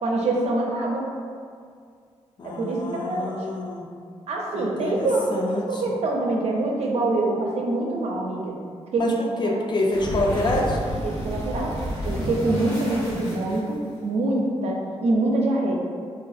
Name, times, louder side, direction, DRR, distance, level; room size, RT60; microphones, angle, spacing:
voice 1, 0.0-1.1 2.4-2.8 3.0-3.3 4.3-8.5 8.9-9.0 9.4-9.6 11.0-11.7 12.0-15.8, right 2 dB, 75° right, -2 dB, 0.5 m, -25 dB
voice 2, 2.4-3.9 4.5-5.9 9.0-10.8, left 2 dB, 40° left, -1 dB, 0.4 m, -27 dB
sound 1, 9.8-14.0, equal, 80° left, 1.1 m, -30 dB
2.4 x 2.3 x 2.5 m, 2.2 s
wide cardioid pair, 110°, 11 cm